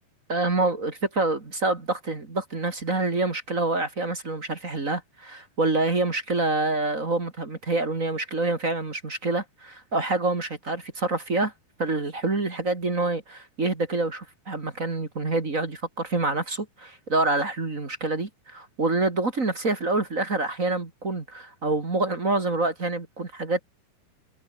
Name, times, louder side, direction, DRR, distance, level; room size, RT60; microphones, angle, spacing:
voice 1, 0.3-11.5 11.8-23.6, right 2 dB, 25° right, 2.1 m, -27 dB
omnidirectional pair, 4.7 m